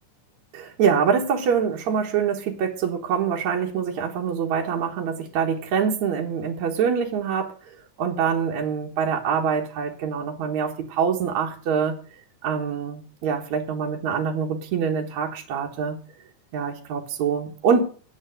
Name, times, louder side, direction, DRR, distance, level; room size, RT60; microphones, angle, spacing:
voice 1, 0.5-7.7 8.0-12.0 12.4-16.0 16.5-17.8, right 7 dB, 65° right, 1 dB, 2.6 m, -25 dB
10.0 x 8.7 x 6.6 m, 0.42 s
omnidirectional pair, 3.6 m